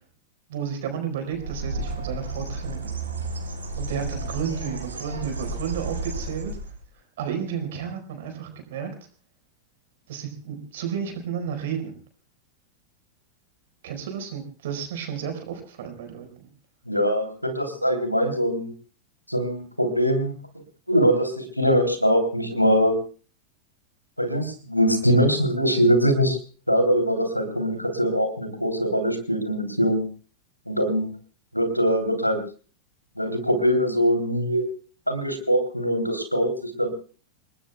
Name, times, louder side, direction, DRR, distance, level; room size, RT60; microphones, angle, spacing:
voice 1, 0.5-2.9 3.8-6.5 7.2-8.9 10.1-12.0 13.8-16.5, right 8 dB, 55° right, 5 dB, 4.8 m, -32 dB
Bird, 1.3-6.8, right 2 dB, 75° right, 4.8 m, -32 dB
voice 2, 16.9-18.7 19.3-20.3 20.9-23.0 24.2-26.4 26.7-30.1 30.7-31.1 31.5-32.4 33.2-34.6 35.1-36.9, equal, 90° left, 7 dB, 3.4 m, -22 dB
28.5 x 19.5 x 2.3 m, 0.38 s
figure-of-eight pair, 90°, 0 cm